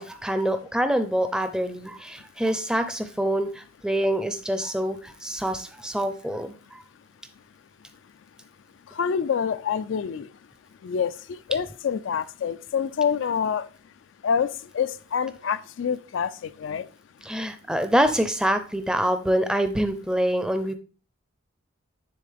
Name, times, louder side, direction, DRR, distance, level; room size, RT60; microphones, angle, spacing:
voice 1, 0.0-6.8 17.2-20.7, right 1 dB, 5° right, 0.5 m, -26 dB
voice 2, 8.9-10.3 10.8-13.7 14.2-16.9, left 7 dB, 70° left, 0.3 m, -27 dB
9.9 x 3.8 x 3.4 m
head